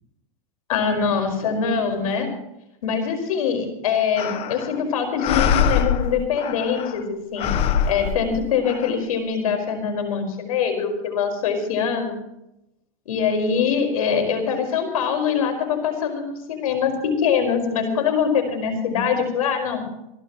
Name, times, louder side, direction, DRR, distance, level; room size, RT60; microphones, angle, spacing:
voice 1, 0.7-2.3 2.8-7.5 7.9-12.2 13.0-16.9 17.2-19.8, left 6 dB, 85° left, 5 dB, 5.1 m, -23 dB
sound 1, 4.2-4.8 5.2-7.0 7.4-8.9, left 8 dB, 35° left, 1.1 m, -24 dB
27.5 x 12.5 x 3.1 m, 0.84 s
supercardioid pair, 135°, 18 cm